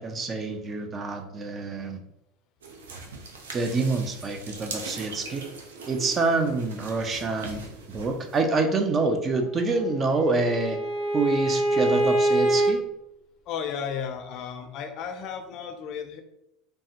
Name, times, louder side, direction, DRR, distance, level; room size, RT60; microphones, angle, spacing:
voice 1, 0.0-2.0 3.5-5.5 5.9-7.6 7.9-10.8 11.1-12.8, right 3 dB, 30° right, 5 dB, 0.5 m, -26 dB
sound 1, 2.6-8.4, right 3 dB, 90° right, 0.5 m, -41 dB
Bowed string instrument, 9.6-12.7, right 1 dB, 70° right, 1.1 m, -25 dB
voice 2, 13.5-16.2, left 7 dB, 55° left, 6 dB, 0.4 m, -34 dB
3.3 x 2.1 x 2.9 m, 0.83 s
hypercardioid pair, 95°, 0 cm